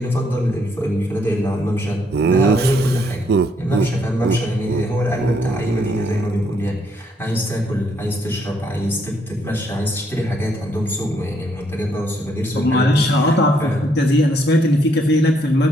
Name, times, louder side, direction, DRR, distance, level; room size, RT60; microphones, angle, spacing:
voice 1, 0.0-3.3 3.6-13.8, equal, 10° left, -3 dB, 3.6 m, -23 dB
Laughter, 2.1-3.9 4.2-4.4 4.7-4.8 5.1-6.7, right 5 dB, 60° right, 0.4 m, -21 dB
voice 2, 12.5-15.7, left 1 dB, 65° left, 0 dB, 1.5 m, -17 dB
15.0 x 6.1 x 6.7 m, 1.0 s
head